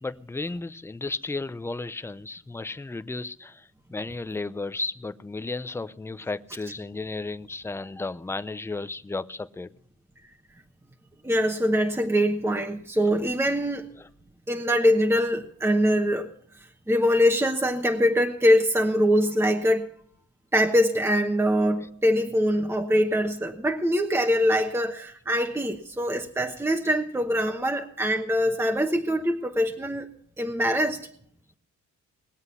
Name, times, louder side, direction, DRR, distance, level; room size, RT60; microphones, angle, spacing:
voice 1, 0.0-9.7 14.0-14.1, left 3 dB, 10° left, 14 dB, 0.5 m, -34 dB
voice 2, 11.2-13.9 14.5-16.3 16.9-19.9 20.5-30.1 30.4-31.1, equal, 10° right, 4 dB, 1.1 m, -23 dB
20.5 x 7.9 x 5.6 m, 0.64 s
cardioid pair, 90°, 30 cm